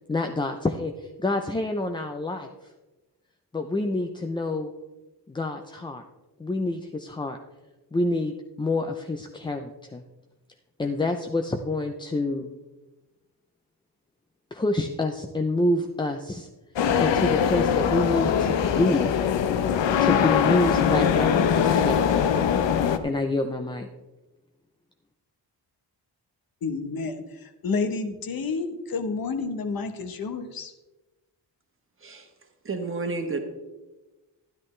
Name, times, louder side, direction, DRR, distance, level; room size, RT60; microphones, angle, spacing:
voice 1, 0.1-2.5 3.5-4.7 5.3-6.0 6.4-7.4 7.9-10.0 10.8-12.5 14.5-16.5 17.0-19.1 20.0-22.5 23.0-23.9, left 2 dB, 10° left, 0.3 m, -27 dB
sound 1, 16.8-23.0, left 7 dB, 85° left, 0.8 m, -22 dB
voice 2, 26.6-30.7, left 4 dB, 55° left, 1.0 m, -30 dB
voice 3, 32.6-33.4, right 3 dB, 30° right, 1.2 m, -30 dB
12.5 x 10.5 x 3.2 m
wide cardioid pair, 175°, 43 cm